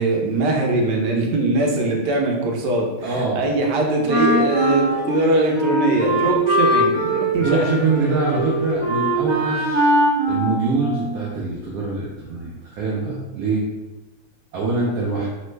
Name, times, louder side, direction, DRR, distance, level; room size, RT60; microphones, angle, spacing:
voice 1, 0.0-3.1 3.3-7.6, right 2 dB, 90° right, 1 dB, 1.3 m, -21 dB
voice 2, 3.0-3.4 7.3-9.9 10.3-13.7 14.5-15.3, right 3 dB, 70° right, -4 dB, 0.9 m, -24 dB
sound 1, 4.0-6.9 7.5-10.4, left 3 dB, 75° left, 0.6 m, -37 dB
Wind instrument woodwind instrument, 4.1-11.3, right 1 dB, 30° right, 0.5 m, -21 dB
3.2 x 2.1 x 3.1 m, 1.1 s
omnidirectional pair, 1.8 m